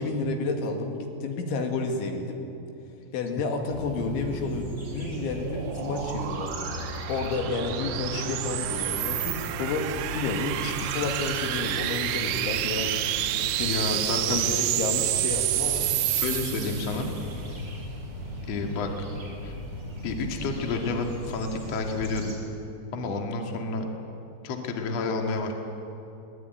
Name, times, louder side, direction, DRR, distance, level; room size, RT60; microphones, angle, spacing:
voice 1, 0.0-2.4 3.1-6.5 6.8-12.9 13.6-15.9, left 3 dB, 80° left, 3 dB, 4.5 m, -31 dB
sound 1, 3.7-22.3, equal, 15° right, 4.5 m, -37 dB
sound 2, 4.7-17.2, right 14 dB, 85° right, 3.1 m, -29 dB
voice 2, 13.7-14.4 16.1-17.1 18.4-18.9 19.4-19.6 20.0-22.4 22.9-23.8 24.4-25.5, left 3 dB, 45° left, 3 dB, 2.5 m, -30 dB
22.5 x 19.0 x 9.4 m, 2.8 s
omnidirectional pair, 5.3 m